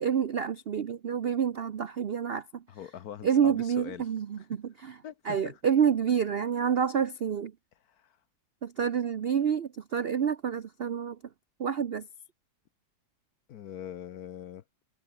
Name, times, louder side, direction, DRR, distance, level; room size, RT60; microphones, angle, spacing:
voice 1, 0.0-2.6 3.2-5.0 5.2-7.5 8.6-11.2 11.6-12.1, right 7 dB, 70° right, 0.5 m, -28 dB
voice 2, 2.7-4.1 4.4-4.6 5.0-5.6 7.9-8.2 13.5-14.6, left 10 dB, 60° left, 1.2 m, -43 dB
omnidirectional pair, 2.0 m